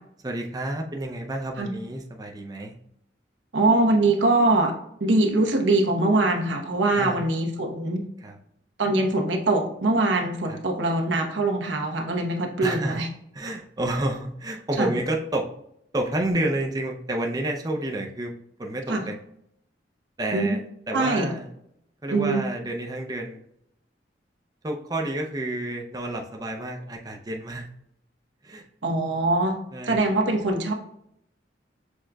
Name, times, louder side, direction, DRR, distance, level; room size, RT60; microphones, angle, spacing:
voice 1, 0.2-2.8 6.9-7.2 8.2-8.4 10.5-10.6 12.6-13.0 13.3-15.4 15.9-19.2 20.2-20.6 20.9-21.5 22.0-23.4 24.6-27.7 28.4-28.7 29.7-30.0, right 1 dB, 20° right, 1 dB, 0.5 m, -30 dB
voice 2, 3.5-4.7 5.0-8.0 8.8-13.1 14.8-14.9 18.9-19.0 20.3-20.5 20.9-21.3 22.1-22.4 28.8-29.6 29.8-30.7, right 2 dB, 90° right, 2 dB, 1.0 m, -22 dB
6.3 x 3.7 x 2.3 m, 0.74 s
head